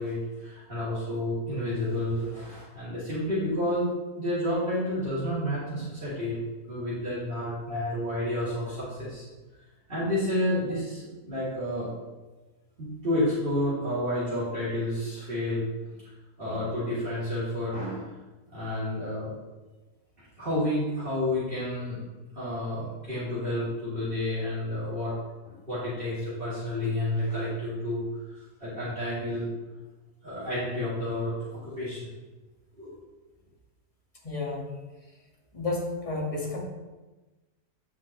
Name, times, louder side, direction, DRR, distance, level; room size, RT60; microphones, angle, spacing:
voice 1, 0.0-3.9 4.1-6.4 6.7-9.2 9.9-11.9 12.8-15.6 16.4-18.1 18.5-19.3 20.4-22.0 22.3-25.1 25.4-29.5 30.2-32.1 32.8-32.9, left 1 dB, 35° right, -11 dB, 2.8 m, -30 dB
voice 2, 34.2-34.7 35.5-36.6, left 3 dB, 20° left, -2 dB, 1.6 m, -31 dB
9.2 x 5.8 x 3.0 m, 1.2 s
omnidirectional pair, 1.7 m